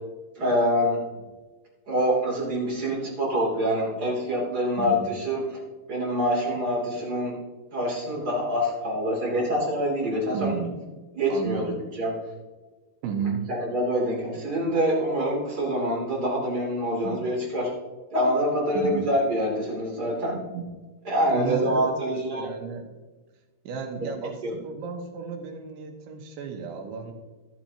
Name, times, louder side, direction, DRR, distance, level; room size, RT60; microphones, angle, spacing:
voice 1, 0.3-1.0 1.9-5.4 5.9-7.3 7.7-10.6 11.1-12.1 13.5-17.7 18.1-20.4 21.0-22.5 24.0-24.1 24.4-24.5, equal, 25° right, -5 dB, 2.6 m, -25 dB
voice 2, 4.8-5.1 10.3-10.8 11.3-11.8 13.0-13.5 17.0-17.3 18.8-19.0 20.5-20.6 21.3-22.8 23.7-27.1, right 6 dB, 80° right, 3 dB, 3.5 m, -33 dB
12.0 x 11.0 x 2.9 m, 1.3 s
omnidirectional pair, 5.3 m